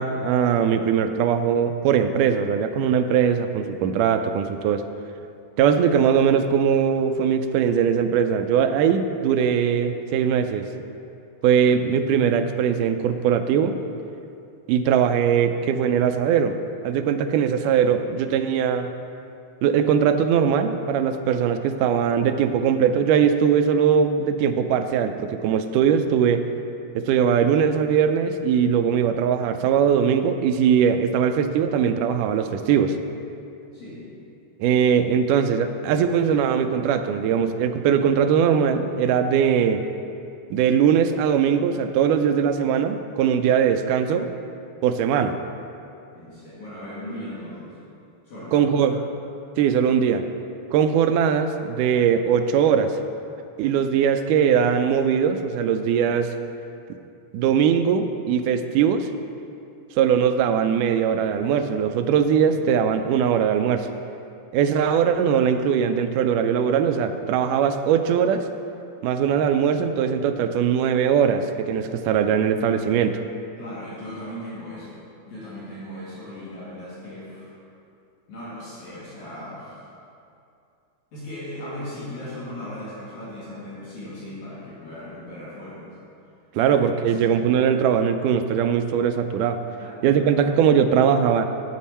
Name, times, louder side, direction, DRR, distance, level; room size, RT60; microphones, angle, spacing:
voice 1, 0.0-4.8 5.6-10.7 11.4-13.8 14.7-16.6 16.8-18.9 19.6-26.4 27.0-33.0 34.6-39.8 40.5-44.3 44.8-45.4 48.5-49.0 49.6-50.2 50.7-52.9 53.6-56.3 57.3-59.1 60.0-63.9 64.5-68.4 69.0-73.2 86.5-89.6 90.0-91.5, right 7 dB, 85° right, 8 dB, 2.1 m, -20 dB
voice 2, 33.7-34.1 46.1-47.8 48.3-49.0 73.6-77.5 78.3-79.8 81.1-85.9 86.7-86.8 87.0-87.4 89.8-90.5, left 1 dB, 65° left, -9 dB, 3.5 m, -38 dB
9.0 x 8.3 x 4.2 m, 2.6 s
omnidirectional pair, 3.7 m